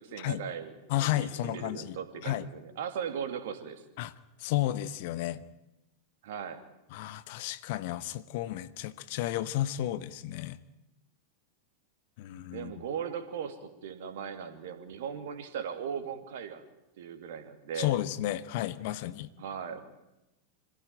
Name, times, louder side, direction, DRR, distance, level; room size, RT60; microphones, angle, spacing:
voice 1, 0.0-0.7 1.1-3.8 6.2-6.6 12.5-16.6 17.0-18.0 19.4-19.9, right 7 dB, 55° right, 8 dB, 2.7 m, -38 dB
voice 2, 0.9-2.0 2.2-2.5 4.0-4.1 4.4-5.4 6.9-10.6 12.2-12.7 17.8-19.3, left 14 dB, 50° left, 15 dB, 1.0 m, -32 dB
26.0 x 16.5 x 9.1 m, 0.95 s
figure-of-eight pair, 90°, 0 cm